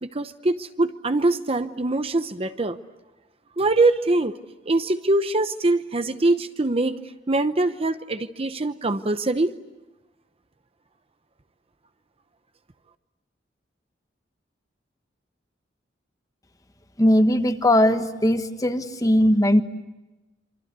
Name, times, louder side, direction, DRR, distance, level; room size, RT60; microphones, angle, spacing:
voice 1, 0.0-2.8 3.6-4.4 4.7-7.0 7.3-9.5, right 2 dB, 30° right, 10 dB, 0.9 m, -23 dB
voice 2, 17.0-19.6, left 1 dB, 20° left, 8 dB, 1.3 m, -19 dB
27.0 x 25.5 x 8.2 m, 1.1 s
head